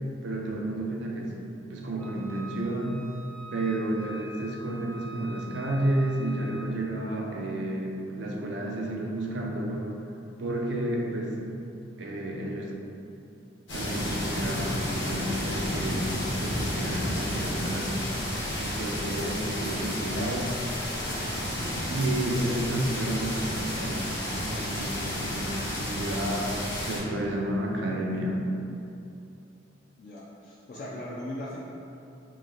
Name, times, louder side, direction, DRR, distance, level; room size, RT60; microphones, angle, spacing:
voice 1, 0.2-1.3 1.7-3.0 3.5-9.9 10.4-11.3 12.0-12.7 13.7-18.0 18.6-20.5 21.9-26.5 26.9-28.4, right 1 dB, 65° right, 0 dB, 0.4 m, -31 dB
Wind instrument woodwind instrument, 2.0-6.7, right 2 dB, 90° right, 1.0 m, -45 dB
sound 1, 13.7-27.0, left 1 dB, 70° left, 1.0 m, -31 dB
sound 2, 14.1-21.7, equal, 90° left, 1.1 m, -45 dB
voice 2, 30.0-31.6, left 1 dB, 45° left, -6 dB, 0.3 m, -39 dB
3.0 x 2.1 x 3.7 m, 2.7 s
head